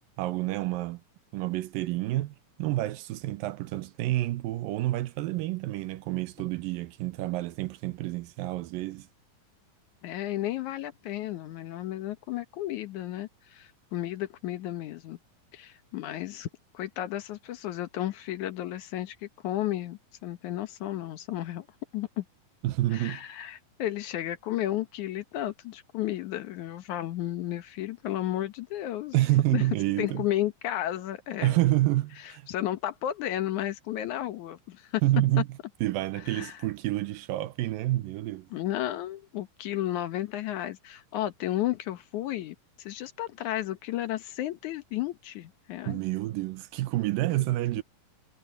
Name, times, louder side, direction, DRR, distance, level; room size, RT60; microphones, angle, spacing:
voice 1, 0.2-1.0 1.3-9.1 22.6-23.2 29.1-30.3 31.4-32.5 35.0-35.5 35.8-38.5 45.8-47.8, right 16 dB, 90° right, 2.6 m, -28 dB
voice 2, 10.0-15.2 15.5-16.5 16.7-21.7 21.9-22.2 22.9-29.1 29.5-29.6 30.0-31.6 32.5-35.0 36.3-36.6 38.5-46.0, left 13 dB, 65° left, 2.4 m, -33 dB
omnidirectional pair, 4.0 m